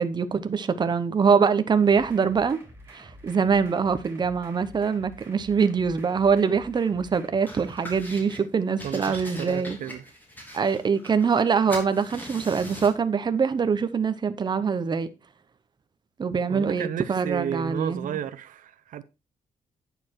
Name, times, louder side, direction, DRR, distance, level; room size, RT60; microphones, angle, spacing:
voice 1, 0.0-2.6 2.9-9.8 10.5-15.1 16.2-18.2, right 6 dB, 30° right, 0.9 m, -24 dB
sound 1, 1.8-8.0, right 1 dB, 15° right, 3.6 m, -49 dB
sound 2, 7.5-8.4 8.8-11.4 11.7-13.0, equal, 15° left, 3.2 m, -41 dB
voice 2, 8.8-10.1 16.5-19.0, right 10 dB, 75° right, 0.7 m, -33 dB
9.6 x 6.8 x 4.6 m
cardioid pair, 130°, 14 cm